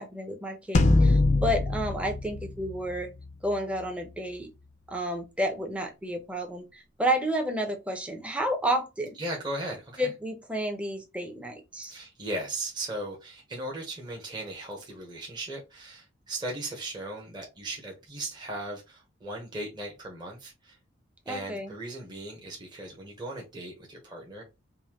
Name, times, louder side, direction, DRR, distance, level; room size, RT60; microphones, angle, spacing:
voice 1, 0.0-3.1 3.4-4.5 4.9-9.2 10.0-11.9 21.3-21.7, right 1 dB, 5° right, 0.8 m, -31 dB
sound 1, 0.7-3.3, left 2 dB, 35° left, 0.5 m, -23 dB
voice 2, 9.2-10.1 11.9-20.8 21.3-24.4, right 1 dB, 20° right, 1.1 m, -37 dB
5.4 x 2.2 x 3.0 m
head